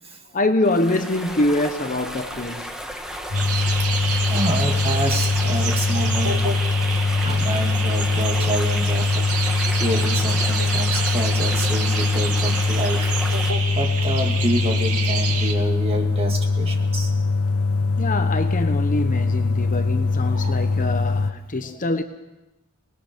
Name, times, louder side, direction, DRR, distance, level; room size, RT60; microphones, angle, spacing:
voice 1, 0.3-2.7 18.0-22.0, left 2 dB, 35° left, 1.0 m, -24 dB
sound 1, 0.6-13.5, equal, 5° right, 1.3 m, -34 dB
sound 2, 3.3-21.3, left 3 dB, 75° left, 1.0 m, -22 dB
sound 3, 3.3-15.5, right 5 dB, 85° right, 2.3 m, -29 dB
voice 2, 4.3-6.5 7.2-9.3 9.8-13.3 13.7-17.1 20.3-20.6 21.6-21.8, right 1 dB, 25° right, 2.2 m, -28 dB
25.5 x 20.0 x 5.2 m
head